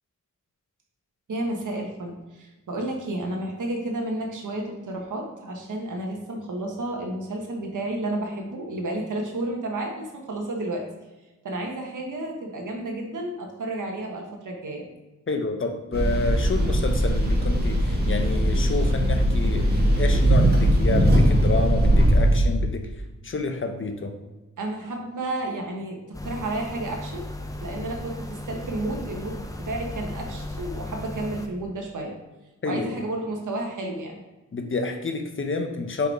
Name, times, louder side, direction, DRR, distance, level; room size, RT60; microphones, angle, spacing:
voice 1, 1.3-10.8 11.4-14.8 24.6-27.3 27.6-32.1 32.6-34.1, right 2 dB, 80° right, 1 dB, 1.3 m, -31 dB
voice 2, 15.3-22.9 23.2-24.2 32.6-32.9 34.5-36.1, left 3 dB, 40° left, 5 dB, 0.8 m, -29 dB
sound 1, 15.9-22.5, right 1 dB, 30° right, 1.7 m, -20 dB
sound 2, 26.1-31.5, left 1 dB, 10° left, 0.6 m, -36 dB
5.2 x 4.8 x 4.6 m, 1.1 s
wide cardioid pair, 115°, 30 cm